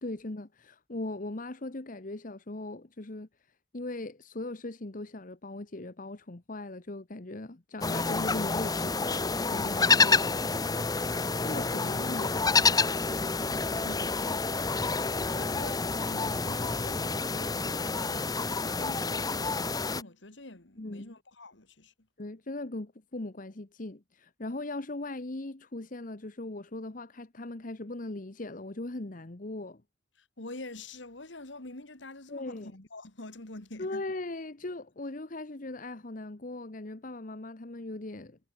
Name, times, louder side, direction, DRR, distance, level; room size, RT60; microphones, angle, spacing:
voice 1, 0.0-3.3 3.7-10.4 11.4-12.3 20.8-21.2 22.2-29.8 32.3-32.7 33.8-38.5, left 2 dB, 45° left, 1.2 m, -39 dB
sound 1, 7.8-20.0, left 4 dB, 20° left, 0.9 m, -28 dB
voice 2, 13.8-14.3 15.0-21.9 30.2-34.0, left 2 dB, 75° left, 2.7 m, -46 dB
head